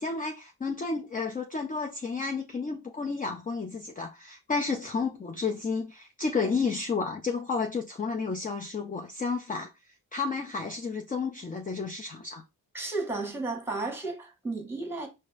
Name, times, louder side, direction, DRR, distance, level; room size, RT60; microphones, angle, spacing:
voice 1, 0.0-12.4, left 4 dB, 25° left, 0.5 m, -31 dB
voice 2, 12.7-15.1, right 3 dB, 5° right, 1.2 m, -33 dB
4.0 x 2.6 x 2.5 m
cardioid pair, 55°, 37 cm